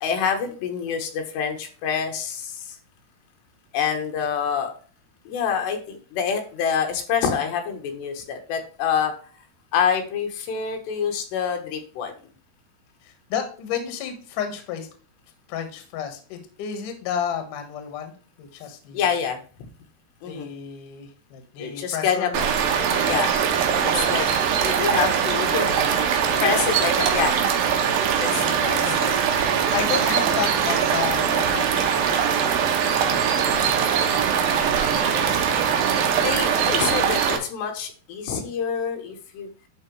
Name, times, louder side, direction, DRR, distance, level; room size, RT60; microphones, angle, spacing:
voice 1, 0.0-2.8 3.7-4.7 5.3-9.1 9.7-12.1 18.9-19.4 20.2-20.5 21.6-22.3 23.1-23.3 23.8-24.3 24.6-25.7 26.4-27.4 28.2-29.2 35.2-35.6 36.2-39.5, left 7 dB, 85° left, 5 dB, 3.4 m, -26 dB
voice 2, 13.0-14.9 15.5-18.1 18.4-19.1 20.2-22.5 25.6-25.8 26.3-26.9 28.4-29.0 29.7-32.2 33.0-34.2 34.5-36.2, left 8 dB, 60° left, 6 dB, 2.5 m, -33 dB
sound 1, 22.3-37.4, right 7 dB, 70° right, 2.6 m, -22 dB
10.5 x 4.3 x 3.1 m, 0.40 s
omnidirectional pair, 4.8 m